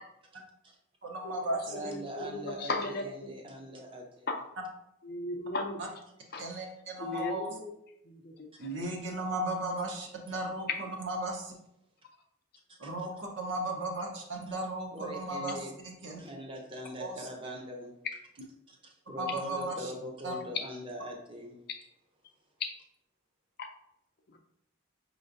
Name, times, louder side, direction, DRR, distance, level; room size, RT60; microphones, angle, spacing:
voice 1, 0.3-0.7 1.6-4.3 6.5-6.7 12.7-13.1 14.5-14.6 14.9-15.8 16.2-17.9 18.7-18.8 19.1-21.6, equal, 25° right, 1 dB, 0.6 m, -42 dB
voice 2, 1.0-1.9 5.8-5.9 6.4-7.6 8.6-11.5 12.8-15.6 15.8-16.2 17.0-17.1 19.2-19.9 20.2-20.3, right 1 dB, 60° right, 1 dB, 0.8 m, -35 dB
voice 3, 1.7-3.3 4.3-4.4 5.0-5.8 6.3-6.4 7.0-7.7 8.1-8.3 23.6-23.7, left 2 dB, 50° left, 4 dB, 0.5 m, -36 dB
5.4 x 3.1 x 2.6 m, 0.78 s
head